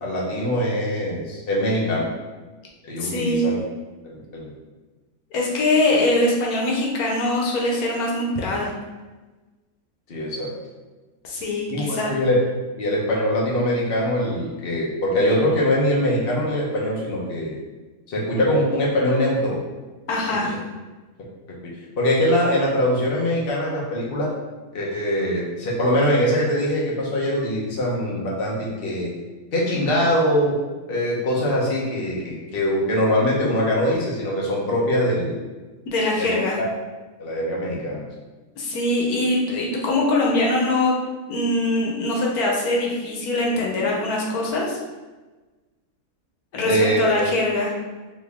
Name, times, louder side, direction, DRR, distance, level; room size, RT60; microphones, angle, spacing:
voice 1, 0.0-2.1 2.8-3.6 4.0-4.5 10.1-10.5 11.7-12.4 12.8-17.6 18.1-19.6 20.4-20.5 22.0-24.3 24.7-29.1 29.5-30.6 30.9-35.4 36.2-36.3 36.6-36.7 37.2-38.1 46.6-47.2, equal, 45° left, -4 dB, 1.0 m, -22 dB
voice 2, 3.0-3.5 5.3-8.7 11.2-12.1 20.1-20.6 35.9-36.6 38.6-40.9 41.3-44.8 46.5-46.7 47.0-47.7, left 2 dB, 90° left, -2 dB, 1.3 m, -22 dB
4.2 x 2.7 x 3.5 m, 1.2 s
omnidirectional pair, 1.5 m